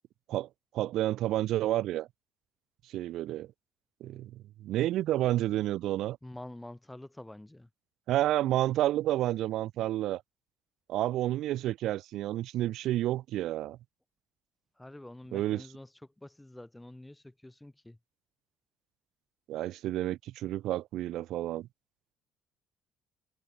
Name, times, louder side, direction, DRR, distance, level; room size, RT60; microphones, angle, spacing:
voice 1, 0.7-2.1 2.9-3.5 4.0-6.2 8.1-10.2 10.9-13.8 15.3-15.6 19.5-21.7, right 14 dB, 70° right, 0.3 m, -30 dB
voice 2, 6.2-7.7 14.8-18.0, left 1 dB, 5° left, 5.5 m, -47 dB
cardioid pair, 110°, 0 cm